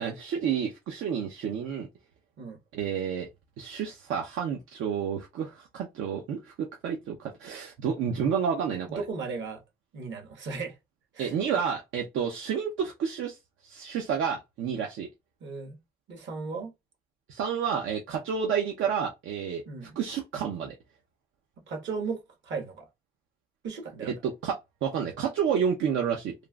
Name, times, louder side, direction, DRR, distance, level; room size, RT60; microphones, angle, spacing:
voice 1, 0.0-1.9 2.7-3.3 3.6-9.0 11.2-13.4 13.6-15.1 17.3-19.6 20.0-20.7 24.0-26.3, right 7 dB, 85° right, 0.6 m, -30 dB
voice 2, 8.9-9.6 9.9-10.8 11.1-11.3 15.4-15.8 16.1-16.7 19.7-20.0 21.7-22.9 23.6-24.2, right 4 dB, 70° right, 1.3 m, -36 dB
3.2 x 2.5 x 2.3 m
cardioid pair, 90°, 20 cm